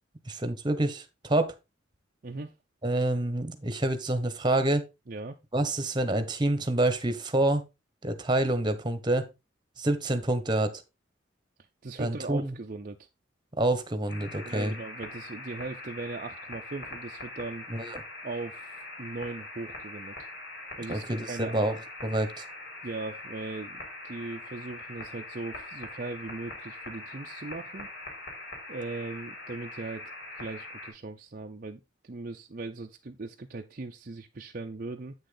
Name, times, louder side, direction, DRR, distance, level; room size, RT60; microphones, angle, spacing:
voice 1, 0.3-1.5 2.8-4.8 5.5-7.6 8.0-9.3 9.8-10.7 12.0-12.5 13.6-14.7 17.7-18.0 20.9-21.7 22.0-22.4, right 1 dB, 25° right, 1.2 m, -27 dB
voice 2, 2.2-2.5 5.1-5.4 11.8-13.1 14.4-17.7 18.2-20.2 20.8-21.7 22.8-27.9 28.7-30.1 30.4-35.1, right 3 dB, 45° right, 0.6 m, -39 dB
sound 1, 14.1-30.9, left 2 dB, 60° left, 4.6 m, -42 dB
8.7 x 6.5 x 3.9 m
head